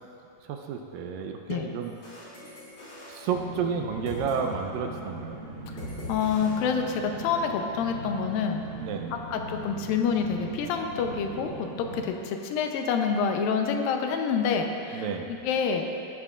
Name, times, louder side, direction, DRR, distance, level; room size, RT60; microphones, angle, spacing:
voice 1, 0.5-1.9 3.1-5.4 8.8-9.2 14.9-15.3, right 6 dB, 80° right, 3 dB, 2.3 m, -31 dB
sound 1, 1.8-4.7 4.9-5.2 5.8-7.3, left 1 dB, 50° left, 4.5 m, -43 dB
sound 2, 3.3-12.0, right 2 dB, 55° right, 1.5 m, -40 dB
voice 2, 6.1-8.6 9.3-15.0 15.3-15.9, left 6 dB, 75° left, 4 dB, 2.4 m, -27 dB
19.0 x 12.0 x 2.5 m, 2.7 s
omnidirectional pair, 4.3 m